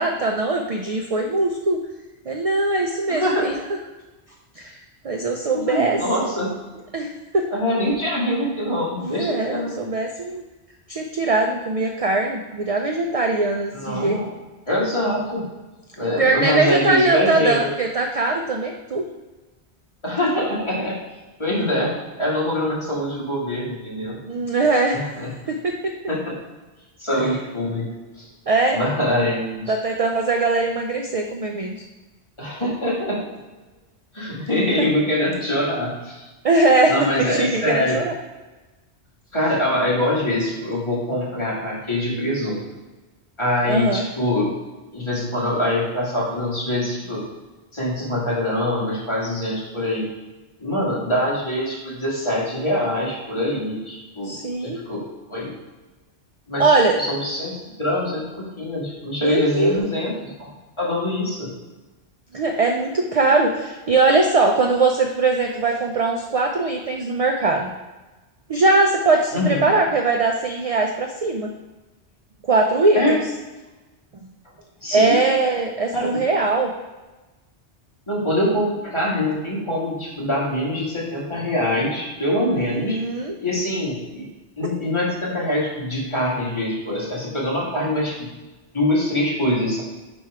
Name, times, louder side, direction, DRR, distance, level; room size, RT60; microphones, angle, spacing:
voice 1, 0.0-1.8 2.3-3.5 4.6-4.8 5.0-6.0 6.9-7.5 9.0-10.4 10.9-14.2 16.2-19.1 24.3-25.0 25.5-25.9 28.5-28.8 29.7-31.8 34.8-34.9 36.4-38.1 43.6-44.1 54.2-54.8 56.6-57.0 59.2-59.8 62.3-67.7 68.5-71.5 72.4-73.2 74.9-76.7 82.5-83.4, right 3 dB, 55° right, 3 dB, 0.4 m, -21 dB
voice 2, 3.1-3.5 5.5-6.5 7.5-9.7 13.7-14.3 14.7-15.4 16.0-17.7 20.0-20.9 21.4-24.2 24.9-25.3 26.1-26.3 27.0-27.9 28.2-28.3 28.7-29.7 32.4-33.2 34.1-36.2 36.9-38.0 39.3-42.6 43.4-44.5 44.9-47.2 47.7-50.1 50.6-54.3 54.6-55.0 55.3-55.5 56.5-58.2 58.6-61.5 69.3-69.7 72.9-73.2 74.8-75.2 75.9-76.1 78.1-83.0 83.4-84.2 84.6-88.3 88.7-89.8, left 1 dB, 25° left, -6 dB, 1.8 m, -24 dB
5.4 x 4.3 x 4.7 m, 1.1 s
omnidirectional pair, 1.1 m